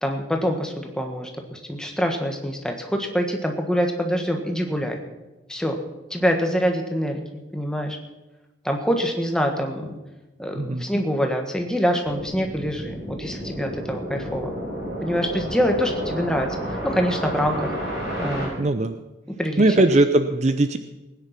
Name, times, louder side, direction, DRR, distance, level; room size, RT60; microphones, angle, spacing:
voice 1, 0.0-5.0 5.5-5.8 6.1-8.0 8.6-10.0 10.4-14.5 15.0-16.5 16.8-17.7 18.2-18.7 19.4-19.6, equal, 5° left, 3 dB, 1.5 m, -25 dB
voice 2, 10.5-10.9 18.6-19.0 19.6-20.8, right 2 dB, 40° right, 9 dB, 0.6 m, -19 dB
sound 1, 12.0-18.5, equal, 70° right, 6.2 m, -31 dB
18.5 x 9.9 x 5.9 m, 1.1 s
head